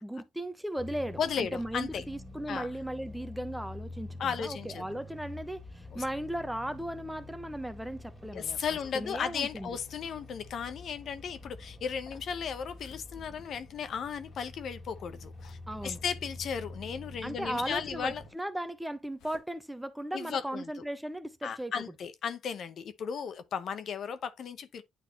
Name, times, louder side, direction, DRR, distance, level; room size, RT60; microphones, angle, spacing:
voice 1, 0.0-8.6 8.9-9.7 15.7-16.0 17.2-21.7, right 1 dB, 5° right, 1.0 m, -37 dB
sound 1, 0.8-18.3, left 2 dB, 10° left, 2.3 m, -47 dB
voice 2, 1.2-2.0 2.5-2.7 4.2-5.0 5.9-6.0 8.3-15.6 15.8-18.2 20.1-20.7 21.4-24.8, left 7 dB, 65° left, 0.9 m, -35 dB
sound 2, 8.7-17.3 17.6-20.5, left 7 dB, 85° left, 1.6 m, -59 dB
9.3 x 4.1 x 2.9 m
cardioid pair, 90°, 0 cm